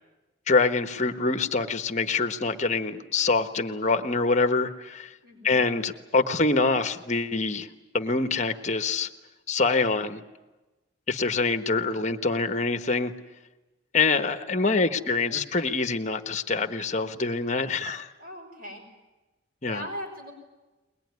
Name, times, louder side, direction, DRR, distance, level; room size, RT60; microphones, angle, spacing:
voice 1, 0.5-5.1 5.4-7.7 7.9-9.1 9.5-10.2 11.1-13.1 13.9-18.1 19.6-19.8, left 3 dB, 35° left, 9 dB, 1.3 m, -25 dB
voice 2, 5.2-5.7 14.5-15.1 18.2-18.9 19.7-20.3, equal, 50° right, 2 dB, 6.0 m, -40 dB
22.0 x 21.0 x 9.6 m, 1.1 s
head